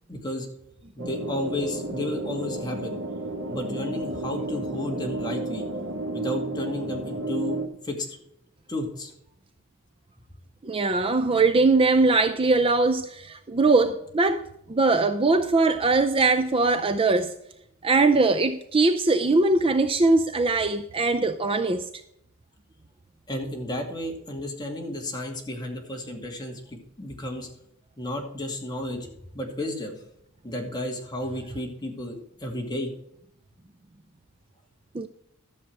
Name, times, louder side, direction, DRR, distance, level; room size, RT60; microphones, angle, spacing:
voice 1, 0.1-0.5 1.0-3.0 3.5-5.6 6.1-7.6 7.8-8.2 8.7-9.1 23.3-27.5 28.0-29.1 29.3-30.0 30.4-32.9, left 1 dB, 20° left, 2.3 m, -32 dB
sound 1, 1.0-7.7, right 2 dB, 80° right, 1.7 m, -32 dB
voice 2, 10.6-17.3 17.8-21.9 34.9-35.1, right 3 dB, 25° right, 0.5 m, -21 dB
13.0 x 7.3 x 4.6 m
head